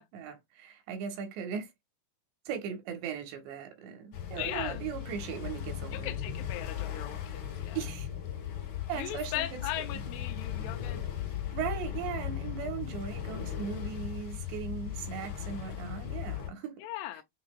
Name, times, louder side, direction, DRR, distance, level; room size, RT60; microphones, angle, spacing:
voice 1, 0.0-1.7 2.5-6.2 7.7-8.1 8.9-10.0 11.5-16.8, right 8 dB, 80° right, 3.3 m, -38 dB
sound 1, 4.1-16.5, left 10 dB, 50° left, 2.6 m, -37 dB
voice 2, 4.4-4.8 5.9-7.8 9.0-11.0 16.8-17.2, left 14 dB, 80° left, 2.5 m, -38 dB
8.2 x 2.9 x 2.2 m
omnidirectional pair, 5.0 m